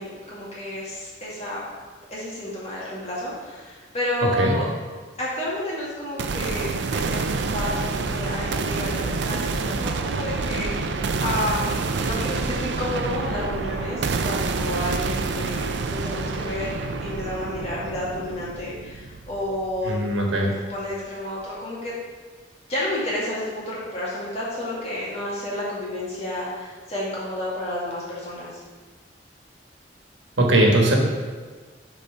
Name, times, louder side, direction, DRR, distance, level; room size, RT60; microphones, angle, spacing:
voice 1, 0.0-1.6 2.1-4.7 5.2-20.0 20.7-21.9 22.7-28.6, left 1 dB, 35° left, -7 dB, 2.1 m, -30 dB
sound 1, 6.2-20.1, right 4 dB, 70° right, 0.4 m, -28 dB
voice 2, 19.8-20.5 30.4-31.0, right 1 dB, 85° right, 0 dB, 1.3 m, -19 dB
6.8 x 4.2 x 5.4 m, 1.5 s
head